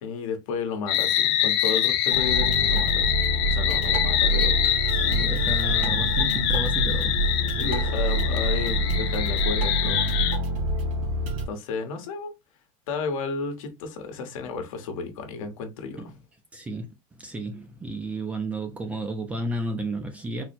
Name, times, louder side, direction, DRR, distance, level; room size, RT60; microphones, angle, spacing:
voice 1, 0.0-3.1 3.4-4.6 7.6-10.1 11.5-12.3 12.9-16.1, left 5 dB, 80° left, 1.2 m, -32 dB
sound 1, 0.9-10.4, left 11 dB, 55° left, 0.7 m, -25 dB
Ambience composition, 2.1-11.5, right 1 dB, 80° right, 1.8 m, -26 dB
voice 2, 5.0-7.2 16.0-16.2 16.5-16.9 17.2-20.4, right 1 dB, 10° right, 0.4 m, -32 dB
4.1 x 2.1 x 4.2 m
supercardioid pair, 175°, 17 cm